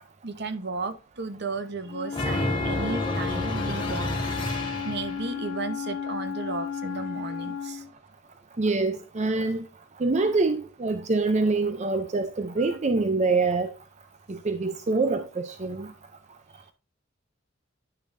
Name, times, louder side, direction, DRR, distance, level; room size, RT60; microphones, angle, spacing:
voice 1, 0.2-4.2 4.8-7.9 12.6-12.8, right 3 dB, 60° right, 1.0 m, -34 dB
Wind instrument woodwind instrument, 1.9-7.9, left 7 dB, 75° left, 0.5 m, -34 dB
sound 1, 2.1-5.3, left 1 dB, 25° left, 2.1 m, -30 dB
voice 2, 8.6-9.7 10.0-13.7 14.3-15.9, right 3 dB, 35° right, 0.6 m, -25 dB
10.0 x 6.8 x 2.7 m
head